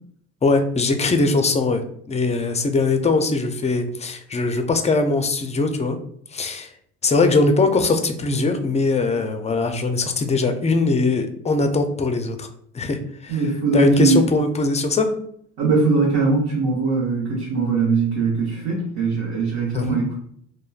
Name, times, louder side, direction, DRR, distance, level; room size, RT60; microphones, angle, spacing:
voice 1, 0.4-1.8 2.1-6.0 6.3-6.7 7.0-12.5 12.7-13.4 13.7-15.1 19.7-20.0, left 3 dB, 20° left, 7 dB, 0.3 m, -21 dB
voice 2, 13.3-14.2 15.6-20.1, right 4 dB, 80° right, -7 dB, 0.9 m, -21 dB
3.0 x 2.1 x 2.3 m, 0.67 s
supercardioid pair, 70°, 37 cm